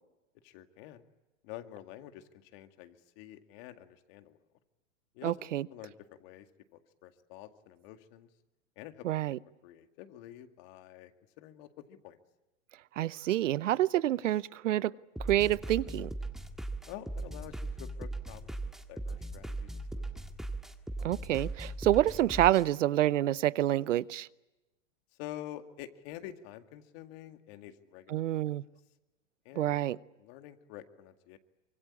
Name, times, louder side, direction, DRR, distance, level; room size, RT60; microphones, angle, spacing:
voice 1, 0.4-1.0 1.4-4.4 5.1-5.4 5.7-5.9 6.2-6.5 6.7-8.3 8.8-9.1 9.6-11.1 11.4-12.2 16.9-18.5 18.9-20.2 25.2-28.5 29.5-29.8 30.2-31.4, left 13 dB, 50° left, 2.2 m, -48 dB
voice 2, 5.2-5.7 9.0-9.4 13.0-14.9 15.2-16.1 21.0-24.3 28.1-28.6 29.6-30.0, right 13 dB, 75° right, 0.8 m, -28 dB
sound 1, 15.2-22.6, right 2 dB, ahead, 1.7 m, -39 dB
25.0 x 24.0 x 8.5 m
hypercardioid pair, 125°, 37 cm